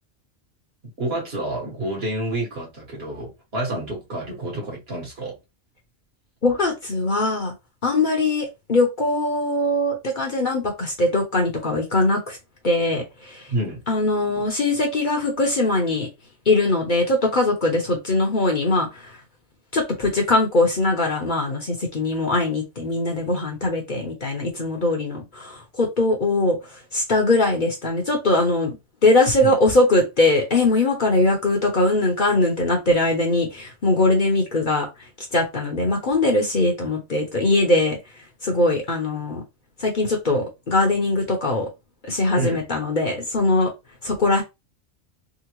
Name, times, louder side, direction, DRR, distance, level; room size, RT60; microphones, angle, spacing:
voice 1, 1.0-5.4 13.5-13.8 29.4-29.5 42.3-42.6, right 1 dB, 55° right, 1.6 m, -28 dB
voice 2, 6.4-7.5 7.8-12.4 12.6-13.5 13.9-16.1 16.5-19.2 19.7-26.6 26.9-28.7 29.0-34.9 35.3-38.0 38.4-39.4 39.8-41.7 42.0-43.7 44.0-44.4, left 2 dB, 45° left, 0.9 m, -21 dB
3.7 x 2.1 x 3.0 m
omnidirectional pair, 1.3 m